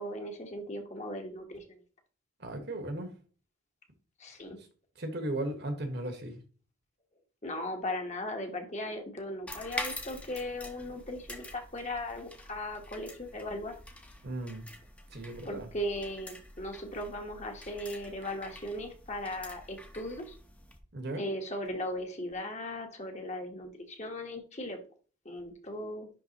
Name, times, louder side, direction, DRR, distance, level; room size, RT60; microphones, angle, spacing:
voice 1, 0.0-1.8 4.2-4.6 7.4-13.7 15.4-20.4 21.2-24.8 25.2-26.1, left 1 dB, 35° left, 4 dB, 1.2 m, -38 dB
voice 2, 2.4-3.1 5.0-6.4 14.2-14.6 15.1-15.7 20.9-21.2, right 1 dB, 50° right, 5 dB, 1.4 m, -36 dB
sound 1, 9.5-20.8, left 1 dB, 5° left, 0.8 m, -46 dB
10.5 x 3.6 x 2.9 m, 0.38 s
head